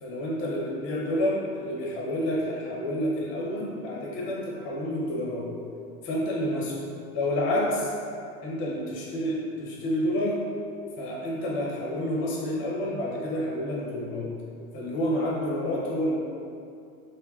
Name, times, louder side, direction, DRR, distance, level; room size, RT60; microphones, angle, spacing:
voice 1, 0.0-5.5 6.0-6.8 7.1-7.9 8.4-10.4 11.0-14.3 14.7-16.1, left 1 dB, 30° left, -3 dB, 0.5 m, -29 dB
3.5 x 2.6 x 2.2 m, 2.5 s
supercardioid pair, 130°, 45 cm